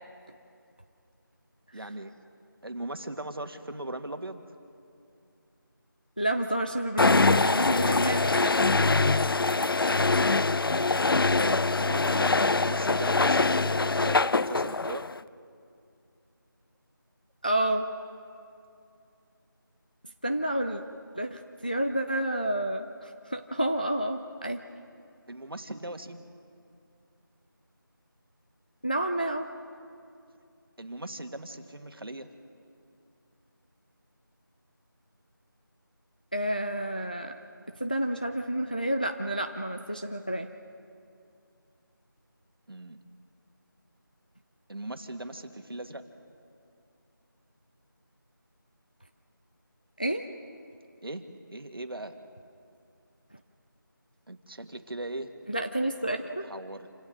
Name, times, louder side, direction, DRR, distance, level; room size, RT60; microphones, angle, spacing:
voice 1, 1.7-2.1 2.6-4.4 11.4-15.1 25.3-26.3 30.8-32.3 42.7-43.0 44.7-46.0 51.0-51.2 51.5-52.2 54.3-55.3 56.4-56.9, right 1 dB, 90° right, 7 dB, 1.8 m, -39 dB
voice 2, 6.2-8.5 17.4-17.9 20.2-20.8 21.1-24.6 28.8-29.5 36.3-37.4 37.8-40.5 50.0-50.3 55.5-56.5, right 1 dB, 25° left, 6 dB, 0.4 m, -29 dB
sound 1, 7.0-15.2, left 3 dB, 80° left, 0.5 m, -24 dB
28.0 x 25.5 x 3.9 m, 2.5 s
figure-of-eight pair, 180°, 12 cm